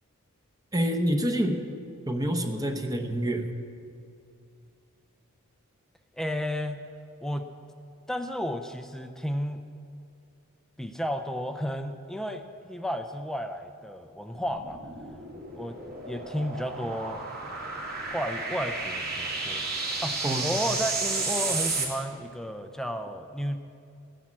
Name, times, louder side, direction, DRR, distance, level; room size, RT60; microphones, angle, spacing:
voice 1, 0.7-1.6 2.1-3.5 20.2-20.5, right 1 dB, 15° right, 4 dB, 0.9 m, -27 dB
voice 2, 6.2-6.8 7.2-7.5 8.1-9.6 10.8-14.8 15.5-15.8 16.0-17.3 18.1-19.7 20.0-23.6, equal, ahead, 7 dB, 0.5 m, -32 dB
sound 1, 14.3-21.9, right 3 dB, 45° right, 2.7 m, -32 dB
15.0 x 10.0 x 7.5 m, 2.5 s
head